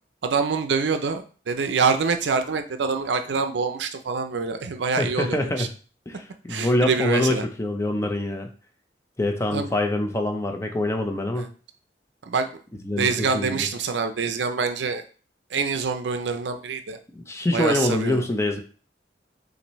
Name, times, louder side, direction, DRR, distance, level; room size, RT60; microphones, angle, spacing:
voice 1, 0.2-5.7 6.5-7.4 9.5-9.7 11.4-11.5 12.2-12.6 13.0-15.0 15.5-17.0 17.5-18.2, right 5 dB, 80° right, 7 dB, 0.5 m, -25 dB
voice 2, 5.0-5.7 6.1-8.5 9.2-11.5 12.8-13.7 17.1-18.6, left 1 dB, 15° left, 5 dB, 0.5 m, -25 dB
5.9 x 2.6 x 3.1 m, 0.38 s
head